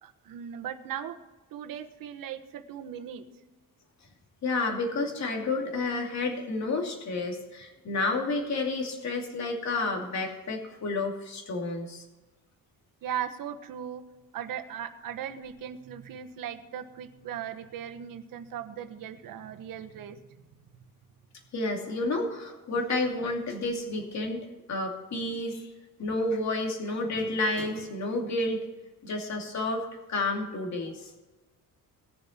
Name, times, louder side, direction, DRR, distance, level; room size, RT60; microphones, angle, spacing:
voice 1, 0.0-1.2 1.5-3.3 13.0-14.0 14.3-20.4, right 9 dB, 70° right, 6 dB, 1.2 m, -38 dB
voice 2, 4.4-12.0 21.5-25.7 26.0-28.6 29.0-31.1, left 2 dB, 50° left, 2 dB, 2.6 m, -30 dB
19.5 x 6.9 x 4.4 m, 1.2 s
cardioid pair, 145°, 35 cm